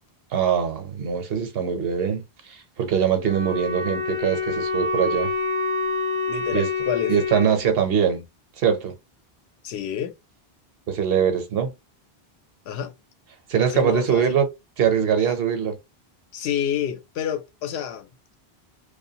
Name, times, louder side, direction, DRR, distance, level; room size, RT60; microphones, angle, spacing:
voice 1, 0.3-2.2 2.5-5.3 6.5-6.7 7.1-8.2 8.6-8.9 10.9-11.7 13.5-14.5 14.8-15.8, right 8 dB, 70° right, 0.9 m, -22 dB
Wind instrument woodwind instrument, 3.2-7.6, left 3 dB, 40° left, 0.4 m, -26 dB
voice 2, 6.3-7.1 9.6-10.1 12.7-12.9 13.7-14.4 16.3-18.1, left 9 dB, 85° left, 0.8 m, -28 dB
2.5 x 2.3 x 2.7 m
omnidirectional pair, 1.0 m